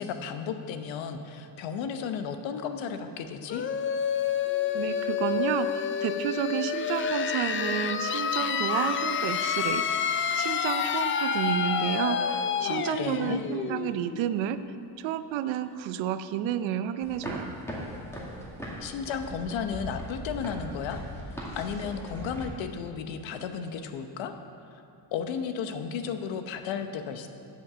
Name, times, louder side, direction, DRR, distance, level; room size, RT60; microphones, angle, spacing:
voice 1, 0.0-3.7 12.6-13.4 18.8-24.3 24.7-24.8 25.1-27.3, left 6 dB, 80° left, 7 dB, 0.9 m, -34 dB
sound 1, 3.5-15.0, left 7 dB, 30° left, 0.4 m, -29 dB
voice 2, 4.7-10.0 10.4-14.6 15.0-17.5, right 10 dB, 85° right, 12 dB, 0.6 m, -31 dB
sound 2, 17.0-22.4, equal, 5° left, 2.1 m, -39 dB
8.4 x 7.2 x 6.8 m, 2.8 s
cardioid pair, 105°, 45 cm